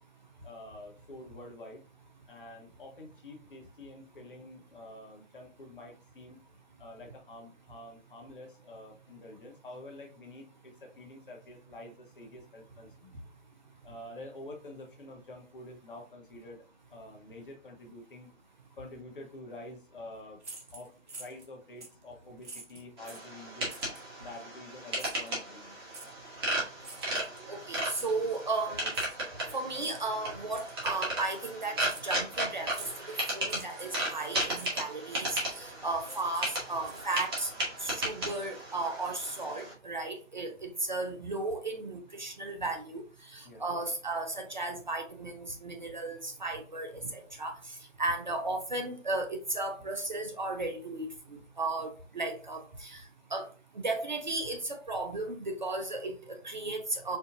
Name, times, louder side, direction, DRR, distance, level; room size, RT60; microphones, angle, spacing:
voice 1, 0.4-1.8 2.3-6.4 6.8-13.1 13.8-18.3 18.8-20.4 20.7-20.9 21.2-23.8 24.2-25.8 43.4-43.7, left 1 dB, 45° left, 1 dB, 1.1 m, -48 dB
sound 1, 20.4-21.5 21.8-22.0 22.4-23.3 23.7-24.1 25.0-25.3 25.9-26.1 26.8-27.5 27.9-28.2 28.9-29.3 29.8-30.0 30.6-30.9 31.2-31.4 31.9-32.1 32.7-33.0 33.4-34.0 34.5-34.7 35.2-35.8 36.0-37.5, right 3 dB, 65° right, 1.1 m, -47 dB
sound 2, 23.0-39.7, right 1 dB, 20° right, 1.1 m, -35 dB
voice 2, 27.5-28.9 29.5-32.9 33.3-37.5 37.8-51.1 51.6-53.0 53.3-53.5 53.8-57.2, right 2 dB, 40° right, 4 dB, 0.5 m, -35 dB
4.5 x 2.4 x 2.6 m, 0.35 s
figure-of-eight pair, 145°, 38 cm